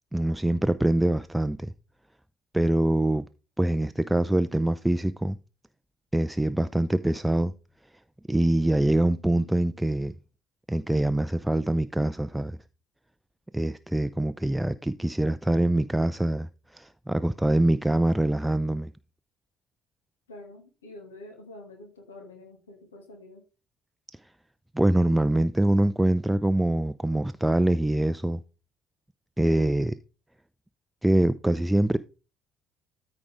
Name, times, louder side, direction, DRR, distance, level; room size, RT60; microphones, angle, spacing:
voice 1, 0.1-1.7 2.5-3.3 3.6-5.4 6.1-7.5 8.3-10.1 10.7-12.6 13.5-18.9 24.7-28.4 29.4-30.0 31.0-32.0, right 1 dB, 5° right, 0.5 m, -24 dB
voice 2, 20.3-23.4, left 2 dB, 80° left, 2.3 m, -47 dB
13.5 x 4.9 x 3.6 m
figure-of-eight pair, 50°, 0 cm